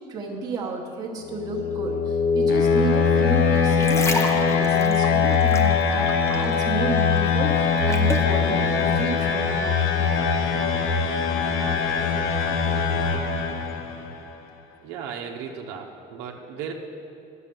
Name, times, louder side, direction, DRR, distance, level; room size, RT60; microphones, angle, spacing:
voice 1, 0.1-10.1, right 4 dB, 20° right, -2 dB, 1.0 m, -32 dB
sound 1, 1.3-14.1, left 6 dB, 55° left, 0.8 m, -22 dB
sound 2, 3.6-6.6 6.9-8.3 8.9-9.1, left 3 dB, 15° left, 0.6 m, -31 dB
voice 2, 14.8-16.7, right 7 dB, 90° right, 1 dB, 0.9 m, -35 dB
10.5 x 6.6 x 6.8 m, 2.6 s
cardioid pair, 175°, 18 cm